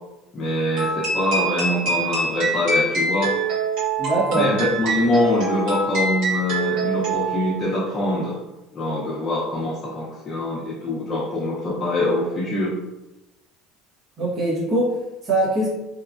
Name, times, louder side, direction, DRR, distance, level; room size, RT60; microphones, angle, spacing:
voice 1, 0.3-3.4 4.3-8.4 8.7-12.8, left 1 dB, 30° left, -7 dB, 0.6 m, -24 dB
sound 1, 0.8-7.6, right 3 dB, 65° right, 1.4 m, -25 dB
voice 2, 4.0-4.5 14.2-15.7, right 2 dB, 35° right, -6 dB, 0.9 m, -22 dB
3.0 x 2.3 x 2.4 m, 1.0 s
supercardioid pair, 120°, 0 cm